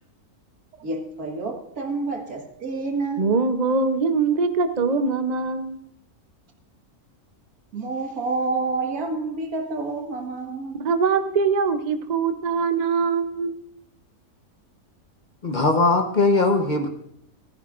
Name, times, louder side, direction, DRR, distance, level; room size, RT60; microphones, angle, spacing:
voice 1, 0.8-3.2 7.7-10.9, right 3 dB, 85° right, 3 dB, 2.1 m, -28 dB
voice 2, 3.2-5.8 10.7-13.5, right 4 dB, 40° right, 9 dB, 0.6 m, -22 dB
voice 3, 15.4-16.9, left 3 dB, 35° left, 5 dB, 1.0 m, -20 dB
15.0 x 14.5 x 2.5 m, 0.74 s
omnidirectional pair, 1.5 m